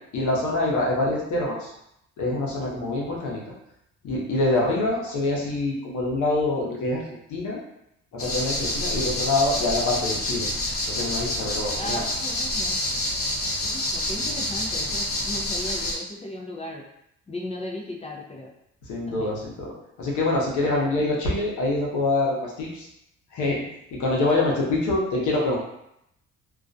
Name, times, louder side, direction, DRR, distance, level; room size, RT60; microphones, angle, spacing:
voice 1, 0.1-1.7 2.2-3.4 4.0-7.6 8.1-10.5 10.9-12.0 18.9-22.9 23.3-23.6 23.9-25.6, left 2 dB, 80° left, -3 dB, 0.8 m, -25 dB
sound 1, 8.2-15.9, left 1 dB, 45° left, 0.8 m, -28 dB
voice 2, 11.8-12.8 13.6-16.8 17.3-18.5 19.1-19.4 25.1-25.2, left 1 dB, 20° left, -1 dB, 0.4 m, -36 dB
2.4 x 2.2 x 2.5 m, 0.79 s
cardioid pair, 90°, 30 cm